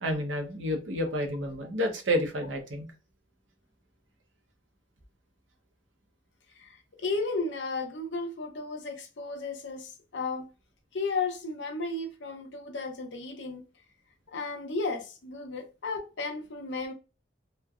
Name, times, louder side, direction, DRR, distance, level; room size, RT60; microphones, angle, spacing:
voice 1, 0.0-2.9, equal, 85° right, 0.8 m, -30 dB
voice 2, 6.6-10.5 10.9-13.6 14.3-16.9, left 3 dB, 75° left, 0.7 m, -34 dB
3.1 x 2.1 x 2.3 m
head